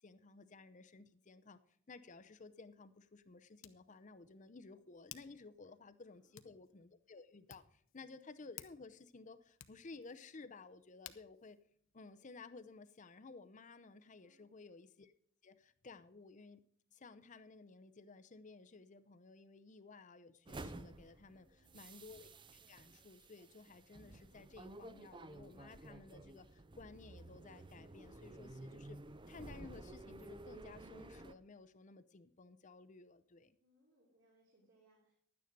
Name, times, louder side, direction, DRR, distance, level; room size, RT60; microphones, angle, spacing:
voice 1, 0.0-1.6 1.9-11.6 11.9-15.1 15.4-16.6 16.9-29.0 29.3-33.6, left 3 dB, 35° left, 11 dB, 0.6 m, -56 dB
Hands, 2.0-12.8, left 12 dB, 70° left, 0.8 m, -61 dB
voice 2, 6.0-6.4 14.2-14.5 21.3-21.8 33.6-35.1, right 1 dB, 60° right, -3 dB, 3.3 m, -73 dB
sound 1, 20.5-31.3, right 2 dB, 25° right, 0.5 m, -53 dB
11.5 x 9.4 x 5.2 m, 0.63 s
head